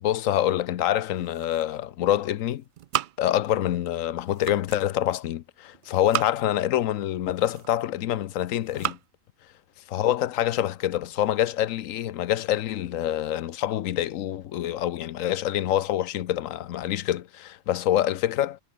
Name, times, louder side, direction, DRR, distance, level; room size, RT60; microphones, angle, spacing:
voice 1, 0.0-2.6 3.2-9.0 9.9-18.6, left 12 dB, 90° left, 1.1 m, -26 dB
sound 1, 1.0-2.0 2.3-3.7 4.1-4.9 5.7-6.6 7.2-8.0 8.5-9.1, right 11 dB, 70° right, 0.4 m, -34 dB
omnidirectional pair, 1.4 m